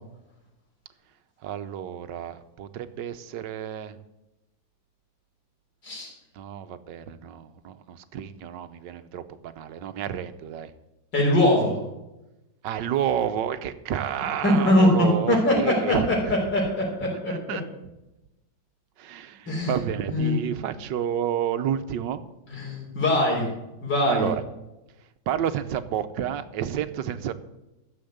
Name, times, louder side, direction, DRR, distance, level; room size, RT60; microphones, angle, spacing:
voice 1, 1.4-4.0 6.4-10.7 12.6-16.3 17.3-17.6 19.0-22.2 24.0-24.4 25.3-27.3, right 9 dB, 80° right, 11 dB, 1.5 m, -30 dB
voice 2, 11.1-11.8 14.4-17.6 19.5-19.7 20.1-20.4 22.5-23.4 23.8-24.3, left 1 dB, 75° left, -3 dB, 4.9 m, -22 dB
14.0 x 7.2 x 7.9 m, 0.97 s
omnidirectional pair, 1.9 m